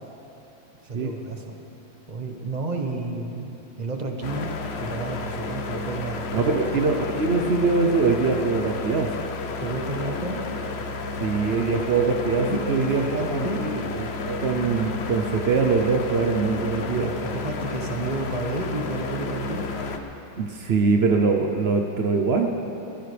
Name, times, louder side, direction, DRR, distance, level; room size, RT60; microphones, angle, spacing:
voice 1, 0.8-1.5 2.1-4.5 4.8-6.5 9.6-10.4 12.5-13.6 17.2-19.9, right 2 dB, 25° right, 2 dB, 1.0 m, -31 dB
sound 1, 4.2-20.0, left 3 dB, 60° left, 0.6 m, -32 dB
voice 2, 6.3-9.2 11.2-17.1 20.4-22.7, right 4 dB, 70° right, 3 dB, 0.5 m, -23 dB
21.0 x 15.5 x 3.4 m, 2.9 s
omnidirectional pair, 2.1 m